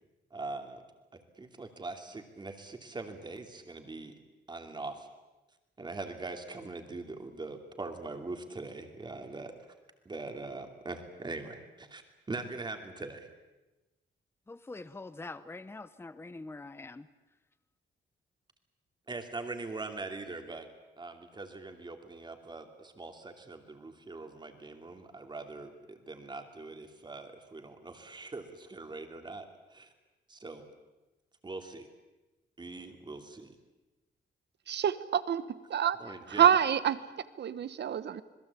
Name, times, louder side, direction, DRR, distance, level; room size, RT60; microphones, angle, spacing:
voice 1, 0.3-0.8 1.4-4.1 4.5-5.1 5.8-9.5 10.0-12.0 12.3-13.3 19.1-20.7 21.0-29.9 30.3-30.6 31.4-31.9 32.6-33.5 36.0-36.5, right 3 dB, 25° right, 5 dB, 2.7 m, -42 dB
voice 2, 14.5-17.0, left 3 dB, 10° left, 14 dB, 0.8 m, -44 dB
voice 3, 34.7-35.4 35.7-36.0 36.3-37.0 37.4-38.2, right 9 dB, 60° right, 15 dB, 1.2 m, -26 dB
27.0 x 21.0 x 8.4 m, 1.1 s
wide cardioid pair, 170°, 20 cm